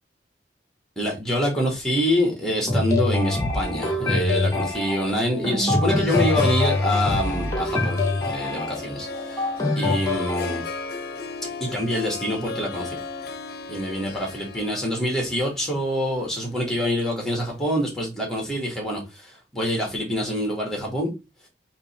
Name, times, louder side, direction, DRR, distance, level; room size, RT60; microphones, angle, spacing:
voice 1, 1.0-9.5 9.7-10.6 11.6-13.0 13.7-21.1, equal, 5° left, 1.5 m, -26 dB
sound 1, 2.7-10.6, left 2 dB, 20° left, 1.0 m, -24 dB
Harp, 5.4-17.6, left 4 dB, 55° left, 0.6 m, -36 dB
3.7 x 2.9 x 4.2 m
head